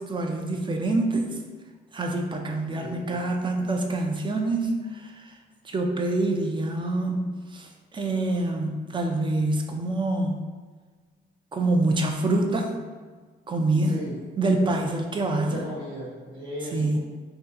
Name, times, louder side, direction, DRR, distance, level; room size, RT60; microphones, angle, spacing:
voice 1, 0.0-1.3 1.9-5.3 5.6-10.4 11.5-12.7 13.5-14.0 14.4-15.6 16.7-17.0, right 2 dB, 25° right, 3 dB, 0.5 m, -26 dB
voice 2, 2.8-3.2 13.8-14.2 15.3-17.0, equal, 80° right, -8 dB, 1.3 m, -36 dB
2.7 x 2.2 x 3.6 m, 1.4 s
cardioid pair, 90°, 20 cm